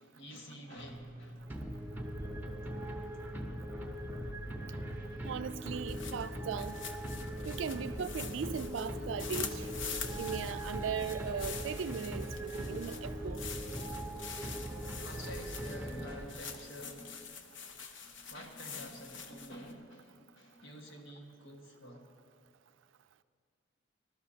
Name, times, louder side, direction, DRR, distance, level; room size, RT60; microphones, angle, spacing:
voice 1, 0.0-1.4 12.5-12.9 13.6-13.7 15.0-17.2 17.6-22.0, equal, 90° left, 1.6 m, -49 dB
sound 1, 0.7-16.3, equal, 45° left, 2.0 m, -52 dB
sound 2, 1.5-16.6, right 1 dB, 10° right, 0.8 m, -41 dB
voice 2, 5.2-6.8 7.4-9.7 10.2-13.5, right 6 dB, 75° right, 0.4 m, -38 dB
sound 3, 5.7-19.7, left 6 dB, 75° left, 0.8 m, -46 dB
20.0 x 12.5 x 2.8 m
head